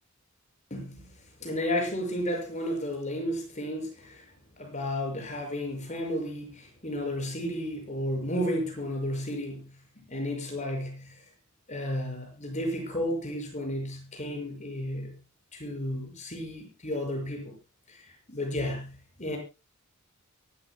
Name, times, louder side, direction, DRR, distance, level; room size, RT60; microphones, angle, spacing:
voice 1, 0.7-1.1 1.4-4.3 4.6-9.7 10.1-11.1 11.7-15.2 15.5-17.5 17.9-19.4, left 1 dB, 35° left, 6.1 m, -33 dB
24.0 x 13.5 x 2.2 m
head